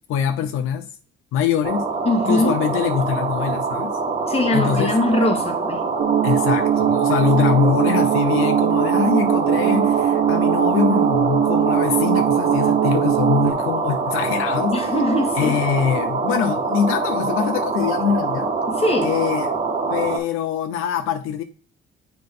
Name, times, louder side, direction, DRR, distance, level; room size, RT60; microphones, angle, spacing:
voice 1, 0.1-0.9 1.3-1.9 2.3-3.9 4.5-4.9 6.2-14.8 15.4-18.5 19.0-19.5 19.9-21.4, left 8 dB, 80° left, 0.6 m, -23 dB
sound 1, 1.6-20.2, right 4 dB, 30° right, 1.3 m, -25 dB
voice 2, 2.0-2.6 4.3-5.8 14.7-15.6 18.7-19.1, left 1 dB, 30° left, 1.4 m, -21 dB
sound 2, 6.0-13.5, right 10 dB, 60° right, 0.7 m, -20 dB
7.7 x 3.6 x 3.7 m
cardioid pair, 110°, 21 cm